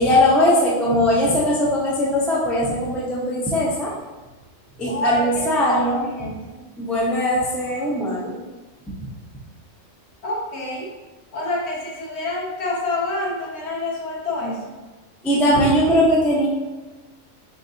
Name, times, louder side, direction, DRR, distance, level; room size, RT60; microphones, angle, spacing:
voice 1, 0.0-3.9 4.8-6.1 6.8-8.4 8.9-9.0 15.2-16.5, left 1 dB, ahead, -6 dB, 0.4 m, -20 dB
voice 2, 4.8-6.6 10.2-10.9 11.3-14.6, left 2 dB, 55° left, -4 dB, 1.1 m, -27 dB
3.9 x 3.7 x 2.6 m, 1.2 s
omnidirectional pair, 1.4 m